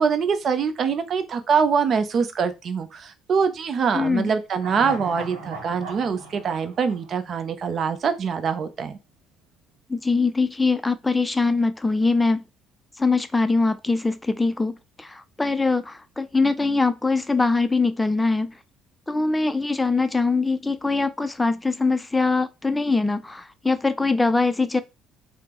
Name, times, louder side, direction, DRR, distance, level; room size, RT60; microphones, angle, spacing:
voice 1, 0.0-9.0, right 6 dB, 50° right, 0.5 m, -24 dB
voice 2, 3.9-4.3 9.9-12.4 13.0-18.6 19.1-24.8, left 3 dB, 15° left, 0.4 m, -22 dB
sound 1, 4.5-7.9 8.2-8.3, right 3 dB, 85° right, 0.9 m, -38 dB
3.3 x 2.0 x 3.0 m
hypercardioid pair, 60°, 0 cm